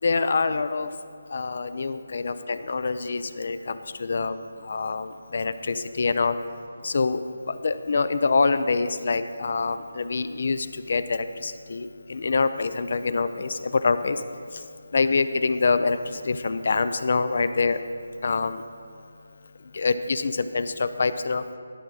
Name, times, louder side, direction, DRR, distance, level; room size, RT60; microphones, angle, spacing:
voice 1, 0.0-0.9 1.3-6.4 6.8-7.2 7.5-14.2 14.5-14.6 14.9-17.8 18.2-18.6 19.7-21.4, left 4 dB, 55° left, 12 dB, 0.4 m, -25 dB
11.5 x 6.0 x 4.0 m, 2.2 s
figure-of-eight pair, 160°, 0 cm